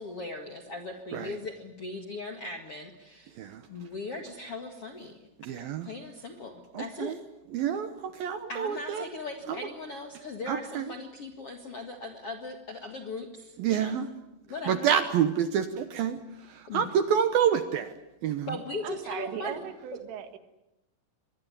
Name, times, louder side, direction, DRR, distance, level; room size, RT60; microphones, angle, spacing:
voice 1, 0.0-3.4 3.7-5.2 5.6-7.2 8.5-14.0 14.5-14.9 16.7-16.9 18.5-19.6, left 2 dB, 55° left, 4 dB, 1.6 m, -39 dB
voice 2, 5.5-5.9 6.8-7.2 7.5-9.1 10.5-10.8 13.6-14.1 14.7-16.2 16.7-17.9 18.2-18.5, right 8 dB, 70° right, 10 dB, 2.3 m, -27 dB
voice 3, 18.8-20.4, right 8 dB, 90° right, 9 dB, 4.3 m, -37 dB
25.0 x 21.0 x 9.8 m, 0.90 s
omnidirectional pair, 5.5 m